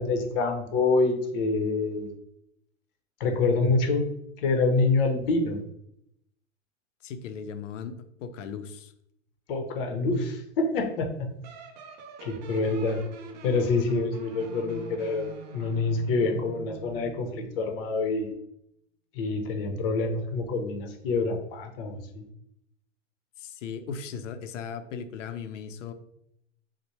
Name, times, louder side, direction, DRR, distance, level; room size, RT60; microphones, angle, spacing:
voice 1, 0.0-2.1 3.2-4.1 4.4-5.6 9.5-11.3 12.2-13.0 13.4-15.3 15.5-18.3 19.1-22.2, left 3 dB, 50° left, 4 dB, 0.8 m, -26 dB
voice 2, 7.0-8.9 19.7-19.8 23.4-25.9, left 6 dB, 80° left, 9 dB, 0.6 m, -37 dB
sound 1, 11.4-17.5, right 7 dB, 35° right, 0.4 m, -44 dB
4.1 x 2.2 x 3.0 m, 0.76 s
hypercardioid pair, 140°, 37 cm